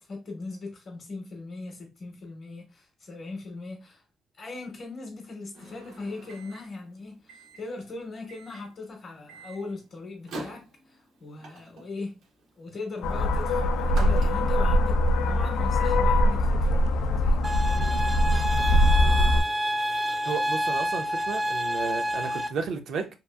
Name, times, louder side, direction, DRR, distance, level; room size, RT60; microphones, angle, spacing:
voice 1, 0.0-4.0 4.4-12.2 12.6-17.7, left 3 dB, 45° left, 0.7 m, -39 dB
Microwave oven, 5.5-14.8, right 2 dB, 85° right, 0.8 m, -46 dB
sound 1, 13.0-19.4, left 1 dB, 90° left, 0.3 m, -22 dB
sound 2, 17.4-22.5, equal, 10° right, 0.4 m, -28 dB
voice 2, 20.2-23.1, right 5 dB, 65° right, 0.5 m, -33 dB
2.8 x 2.4 x 2.3 m
cardioid pair, 135°, 0 cm